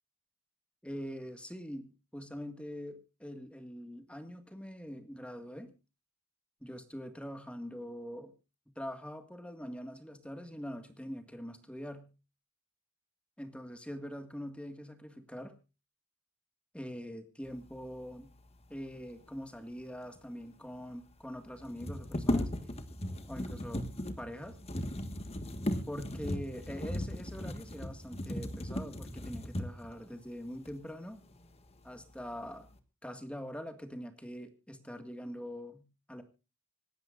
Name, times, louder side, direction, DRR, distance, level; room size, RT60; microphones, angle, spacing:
voice 1, 0.8-5.7 6.6-8.3 8.8-12.1 13.4-15.6 16.7-18.3 18.7-22.5 23.3-23.9 24.2-24.6 25.9-31.2 31.8-32.7 33.0-36.2, equal, 5° left, 8 dB, 1.8 m, -43 dB
sound 1, 20.2-20.3 20.4-20.5 21.6-30.0 30.6-30.8 31.2-31.8 32.2-32.7, left 1 dB, 30° left, 1.6 m, -37 dB
26.0 x 12.5 x 2.5 m, 0.31 s
head